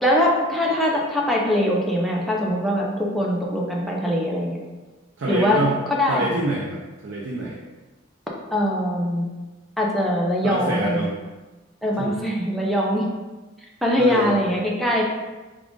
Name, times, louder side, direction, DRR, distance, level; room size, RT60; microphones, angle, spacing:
voice 1, 0.0-4.6 5.3-5.6 5.9-6.3 8.5-9.3 9.8-11.1 11.8-13.1 13.8-15.0, left 1 dB, ahead, -3 dB, 0.5 m, -22 dB
voice 2, 5.2-5.8 6.1-7.6 10.4-11.1 11.9-12.1 14.0-14.5, right 1 dB, 80° right, -3 dB, 0.5 m, -26 dB
3.6 x 2.4 x 3.7 m, 1.2 s
head